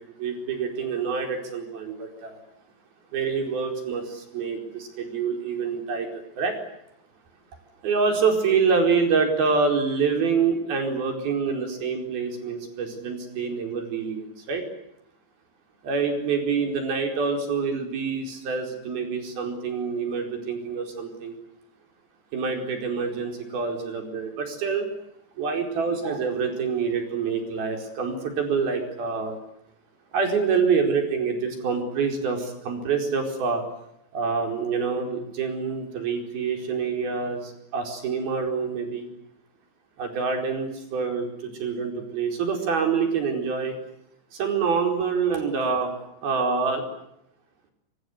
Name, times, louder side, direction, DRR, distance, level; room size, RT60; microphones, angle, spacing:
voice 1, 0.2-2.4 3.1-6.6 7.8-14.6 15.8-21.4 22.3-24.9 25.4-29.4 30.1-33.6 34.1-39.1 40.0-43.8 44.3-45.9 46.2-46.9, right 5 dB, 60° right, 5 dB, 6.4 m, -26 dB
24.5 x 24.0 x 9.8 m, 0.80 s
omnidirectional pair, 5.0 m